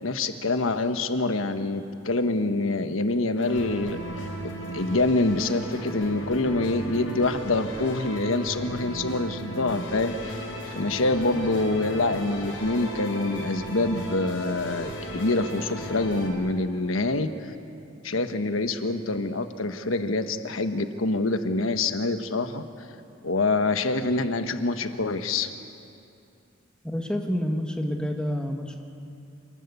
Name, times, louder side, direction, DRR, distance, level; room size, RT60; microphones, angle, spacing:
voice 1, 0.0-4.0 4.4-10.4 10.7-17.5 18.0-22.6 23.2-25.5, left 2 dB, 85° left, 8 dB, 1.2 m, -26 dB
sound 1, 3.4-16.3, equal, 70° left, 5.0 m, -36 dB
voice 2, 26.8-28.8, equal, 5° left, 2 dB, 1.7 m, -28 dB
27.5 x 20.0 x 8.3 m, 2.6 s
head